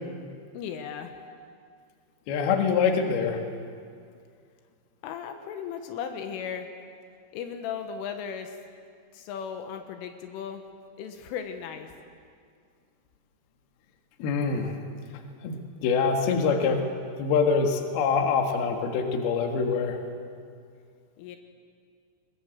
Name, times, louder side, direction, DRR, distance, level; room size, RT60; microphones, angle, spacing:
voice 1, 0.5-1.1 5.0-6.7 7.3-8.6 9.1-10.6 11.0-11.9 21.2-21.4, left 7 dB, 85° left, 6 dB, 3.7 m, -36 dB
voice 2, 2.3-3.4 14.2-14.8 15.4-16.9 17.2-20.0, left 5 dB, 60° left, 3 dB, 3.3 m, -25 dB
22.0 x 21.0 x 7.8 m, 2.2 s
omnidirectional pair, 5.7 m